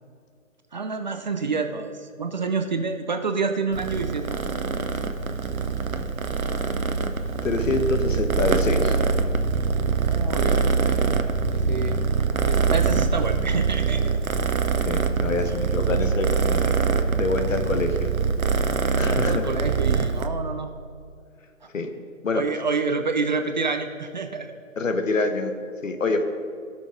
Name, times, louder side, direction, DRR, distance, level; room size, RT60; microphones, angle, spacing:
voice 1, 0.7-4.4 10.1-11.2 11.5-12.0 12.5-14.2 15.4-15.6 18.9-20.7 22.3-24.5, right 4 dB, 35° right, 6 dB, 0.5 m, -28 dB
Purr, 3.7-20.3, right 5 dB, 80° right, 0.9 m, -24 dB
voice 2, 7.4-9.0 14.8-16.7 17.1-18.1 19.0-19.5 21.7-21.9 22.2-22.4 24.8-25.5 25.8-26.2, left 3 dB, 70° left, 7 dB, 1.2 m, -26 dB
17.0 x 6.3 x 3.7 m, 2.3 s
figure-of-eight pair, 145°, 40 cm